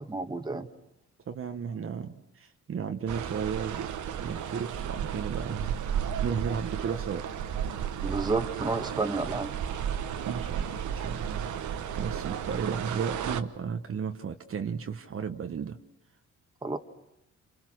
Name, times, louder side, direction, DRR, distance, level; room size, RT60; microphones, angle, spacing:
voice 1, 0.1-0.7 8.0-9.5 16.6-16.8, right 3 dB, 15° right, 7 dB, 1.6 m, -30 dB
voice 2, 1.3-3.9 4.2-7.2 10.3-15.8, right 7 dB, 45° right, 6 dB, 1.2 m, -34 dB
sound 1, 3.1-13.4, right 9 dB, 75° right, 1.3 m, -33 dB
29.0 x 28.5 x 6.3 m, 0.86 s
cardioid pair, 90°, 30 cm